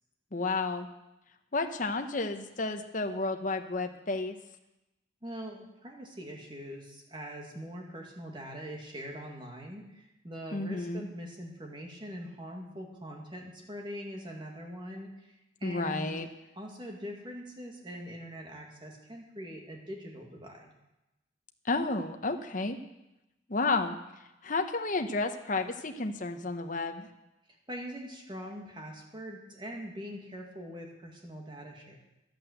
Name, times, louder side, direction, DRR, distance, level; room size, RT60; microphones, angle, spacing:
voice 1, 0.3-0.9 1.5-4.4 10.5-11.1 15.6-16.3 21.6-22.8 23.5-24.0 24.4-27.1, left 3 dB, 45° left, 6 dB, 0.9 m, -31 dB
voice 2, 5.2-16.2 16.6-20.7 27.7-32.0, equal, 25° right, 0 dB, 2.1 m, -43 dB
11.5 x 8.5 x 7.9 m, 0.93 s
head